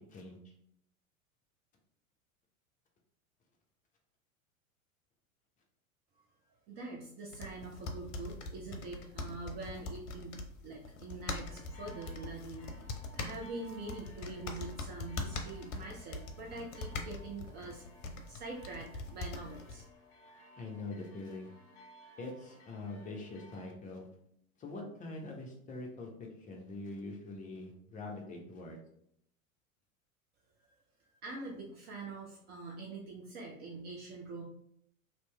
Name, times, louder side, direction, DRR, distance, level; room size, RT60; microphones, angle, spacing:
voice 1, 6.7-17.8 18.3-19.8 31.2-34.4, right 3 dB, 25° right, -1 dB, 0.4 m, -44 dB
Sound Walk - Typing, 7.3-19.9, left 3 dB, 60° left, 0.7 m, -43 dB
sound 1, 11.4-23.7, equal, 40° left, 1.1 m, -58 dB
voice 2, 20.6-21.5 22.2-24.1 24.6-28.8, left 2 dB, 20° left, 0 dB, 0.6 m, -44 dB
3.0 x 2.7 x 3.2 m, 0.70 s
figure-of-eight pair, 85°, 42 cm